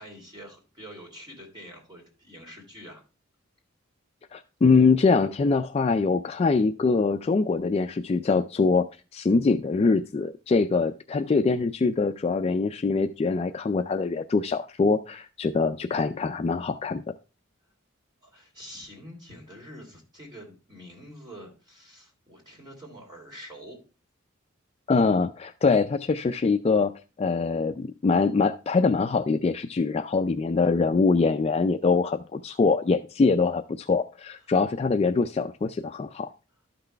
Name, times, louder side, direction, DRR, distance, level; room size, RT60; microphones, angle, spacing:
voice 1, 0.0-3.0 18.2-23.8, equal, 20° right, -1 dB, 3.2 m, -46 dB
voice 2, 4.3-8.9 9.1-17.0 24.9-26.9 27.2-36.3, left 4 dB, 30° left, 8 dB, 0.3 m, -23 dB
12.0 x 6.0 x 3.3 m, 0.32 s
head